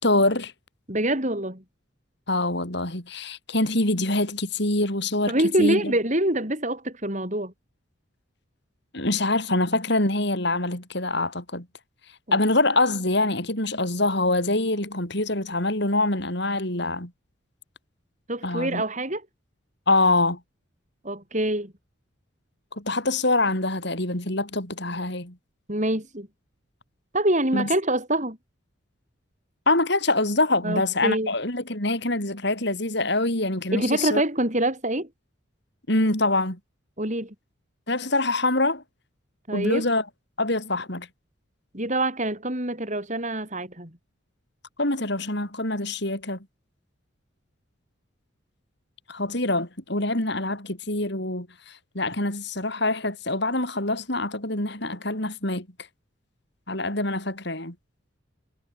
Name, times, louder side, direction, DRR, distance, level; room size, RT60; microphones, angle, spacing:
voice 1, 0.0-0.5 2.3-5.3 5.6-5.9 8.9-11.7 12.3-17.1 18.4-18.8 19.9-20.4 22.8-25.4 27.5-27.7 29.7-34.2 35.9-36.6 37.9-38.8 39.5-40.0 40.4-41.1 44.8-46.4 49.1-55.7 56.7-57.7, left 2 dB, 55° left, 5.9 m, -25 dB
voice 2, 0.9-1.6 5.3-7.5 12.3-12.4 18.3-19.3 21.0-21.7 25.7-26.3 27.1-28.4 30.6-31.3 33.7-35.1 37.0-37.3 39.5-39.9 41.7-43.9, right 1 dB, 35° right, 7.4 m, -25 dB
head